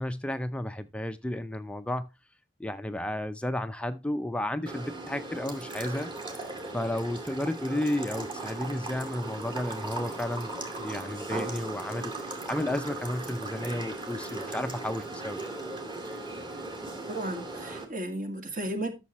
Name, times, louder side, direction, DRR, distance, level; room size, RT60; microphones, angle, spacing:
voice 1, 0.0-2.1 2.6-6.1 6.7-10.5 10.8-15.4, left 1 dB, 5° left, 0.4 m, -32 dB
sound 1, 4.7-17.8, right 2 dB, 25° right, 2.6 m, -38 dB
voice 2, 17.1-19.0, right 1 dB, 45° right, 2.1 m, -34 dB
12.5 x 6.8 x 2.9 m
head